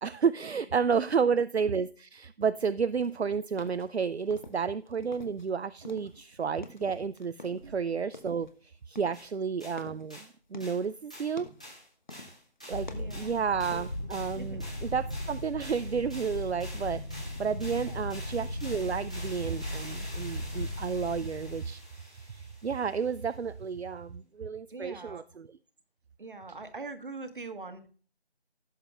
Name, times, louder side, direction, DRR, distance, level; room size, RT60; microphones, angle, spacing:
voice 1, 0.0-10.2 10.5-11.5 12.7-25.5, right 6 dB, 70° right, 15 dB, 0.6 m, -31 dB
voice 2, 1.1-1.4 7.6-7.8 12.9-13.4 14.4-14.6 17.7-18.1 24.7-25.2 26.2-27.9, right 3 dB, 50° right, 8 dB, 1.5 m, -43 dB
sound 1, 3.0-5.5 5.8-8.5 8.9-10.9 11.3-11.8 12.1-12.5 12.7-14.1, left 2 dB, 45° left, 1.1 m, -49 dB
sound 2, 9.1-9.3 9.6-9.8 10.1-10.3 10.6-10.8 11.1-11.4 11.6-23.1, equal, 5° left, 1.0 m, -48 dB
sound 3, 12.7-21.6, left 1 dB, 25° right, 0.7 m, -37 dB
16.5 x 7.4 x 2.4 m, 0.41 s
figure-of-eight pair, 165°, 33 cm